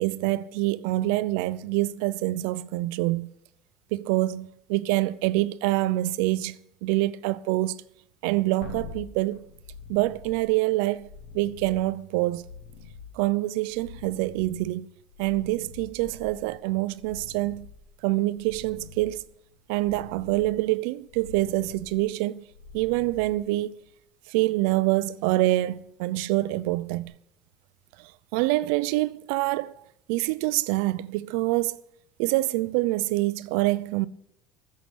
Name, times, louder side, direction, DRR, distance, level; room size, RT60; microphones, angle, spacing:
voice 1, 0.0-3.3 3.9-7.8 8.2-9.4 9.9-11.1 11.3-12.4 13.2-14.9 15.2-17.7 18.0-19.2 19.7-22.4 22.7-23.8 24.3-27.1 28.3-29.7 30.1-31.8 32.2-34.1, right 18 dB, 75° right, 0.5 m, -26 dB
sound 1, 8.6-23.9 27.0-27.1, left 5 dB, 85° left, 3.1 m, -46 dB
14.0 x 7.5 x 6.2 m
cardioid pair, 170°, 0 cm